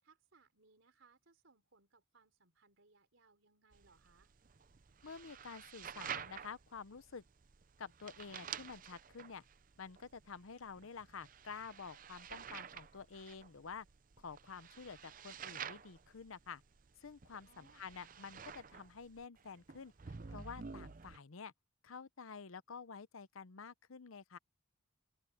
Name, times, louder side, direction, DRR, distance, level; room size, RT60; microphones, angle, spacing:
voice 1, 0.0-4.3 17.4-17.9, right 4 dB, 75° right, 3.6 m, -69 dB
sound 1, 3.7-21.2, right 7 dB, 40° right, 0.6 m, -50 dB
voice 2, 5.0-7.2 7.8-9.4 9.8-13.9 14.2-16.6 17.0-21.5 21.8-24.4, left 5 dB, 90° left, 0.8 m, -50 dB
open air
head